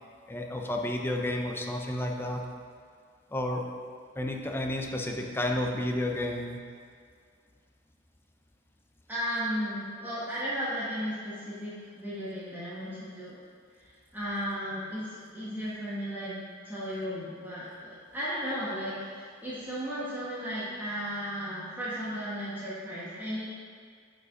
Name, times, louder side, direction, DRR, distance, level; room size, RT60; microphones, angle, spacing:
voice 1, 0.3-2.4 3.3-3.6 4.2-6.6, left 1 dB, 10° left, 2 dB, 0.6 m, -31 dB
voice 2, 9.1-13.3 14.1-23.5, equal, 10° right, -10 dB, 1.4 m, -35 dB
6.9 x 4.8 x 4.9 m, 2.1 s
head